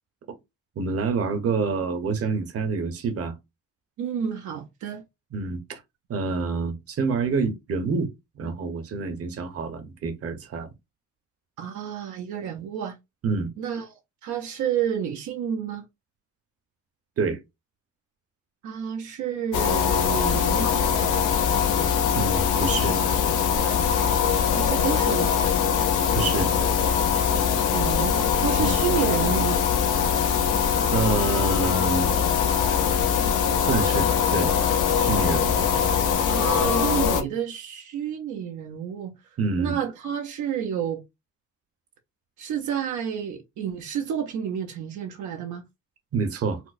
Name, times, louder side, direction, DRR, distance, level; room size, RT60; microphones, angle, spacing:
voice 1, 0.8-3.3 5.3-5.8 6.1-8.1 8.4-10.7 13.2-13.5 17.2-17.4 22.1-23.0 26.1-26.5 28.6-28.8 30.1-30.2 30.9-32.1 33.6-34.5 35.0-35.5 39.4-39.8 46.1-46.6, right 4 dB, 50° right, 0.9 m, -27 dB
voice 2, 4.0-5.0 11.6-13.0 13.6-14.0 14.2-15.8 18.6-20.9 24.5-25.4 27.7-29.6 36.3-39.1 39.6-41.0 42.4-45.6, right 8 dB, 80° right, 0.7 m, -30 dB
sound 1, 19.5-37.2, left 7 dB, 85° left, 0.7 m, -22 dB
4.4 x 2.0 x 2.4 m
cardioid pair, 90°, 30 cm